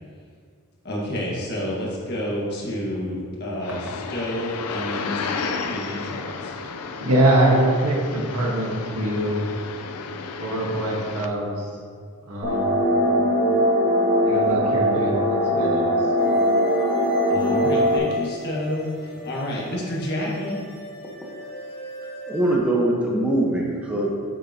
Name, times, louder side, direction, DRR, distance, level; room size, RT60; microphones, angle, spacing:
voice 1, 0.8-6.5 17.3-20.6, left 1 dB, 45° left, -4 dB, 1.7 m, -29 dB
sound 1, 3.6-11.3, left 5 dB, 85° left, 0.5 m, -33 dB
voice 2, 7.0-9.4 10.3-11.7 12.2-12.8 14.2-15.9, right 1 dB, 90° right, -2 dB, 1.5 m, -23 dB
sound 2, 12.4-18.0, equal, 35° right, 1.7 m, -20 dB
sound 3, 16.2-22.6, equal, 15° left, 1.5 m, -39 dB
voice 3, 22.3-24.1, right 1 dB, 5° right, -3 dB, 1.1 m, -22 dB
8.4 x 6.8 x 2.9 m, 2.1 s
head